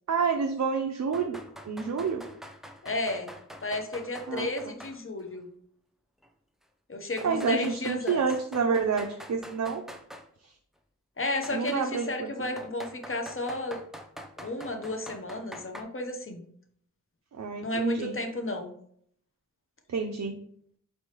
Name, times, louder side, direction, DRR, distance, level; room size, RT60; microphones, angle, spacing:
voice 1, 0.1-2.2 4.3-4.7 7.2-9.8 10.4-10.5 11.5-12.5 17.3-18.2 19.9-20.4, right 5 dB, 60° right, 4 dB, 0.5 m, -29 dB
sound 1, 1.1-5.0 5.3-5.4 6.2-6.3 7.2-10.3 11.4-11.8 12.6-15.8, equal, ahead, 0.5 m, -45 dB
voice 2, 2.8-3.3 3.6-5.5 6.9-8.2 11.2-13.8 14.4-16.4 17.6-18.7, left 2 dB, 40° left, 4 dB, 0.8 m, -33 dB
4.4 x 3.3 x 2.9 m, 0.64 s
wide cardioid pair, 50°, 32 cm